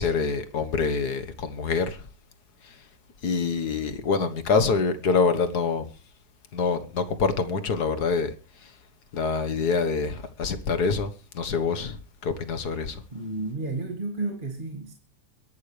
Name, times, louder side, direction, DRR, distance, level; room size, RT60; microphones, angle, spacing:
voice 1, 0.0-2.0 2.6-2.8 3.2-5.8 6.5-8.3 8.6-8.7 9.1-13.0, left 4 dB, 65° left, 1.9 m, -26 dB
voice 2, 13.1-14.9, right 2 dB, 30° right, 2.2 m, -32 dB
22.5 x 11.5 x 3.3 m
omnidirectional pair, 1.9 m